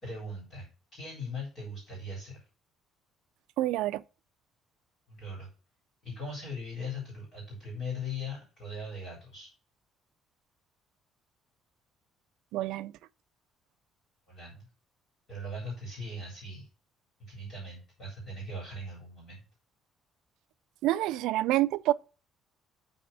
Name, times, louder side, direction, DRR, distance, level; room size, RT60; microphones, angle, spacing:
voice 1, 0.0-0.7 0.9-2.4 5.1-5.5 6.0-9.5 14.3-14.7 15.3-16.7 17.3-19.4, left 2 dB, 30° left, 3.9 m, -39 dB
voice 2, 3.6-4.0 12.5-12.9 20.8-21.9, right 15 dB, 90° right, 0.3 m, -27 dB
8.6 x 4.2 x 4.1 m
cardioid pair, 170°, 0 cm